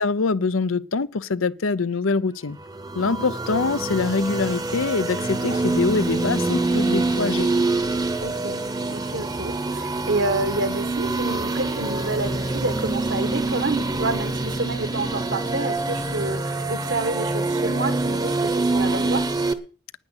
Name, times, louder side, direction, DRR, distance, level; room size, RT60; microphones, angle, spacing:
voice 1, 0.0-2.6 3.0-7.5, left 4 dB, 80° left, 0.7 m, -24 dB
sound 1, 2.6-19.5, right 2 dB, 20° right, 0.9 m, -25 dB
voice 2, 8.2-19.3, right 2 dB, 60° right, 1.3 m, -29 dB
10.0 x 9.9 x 8.3 m
head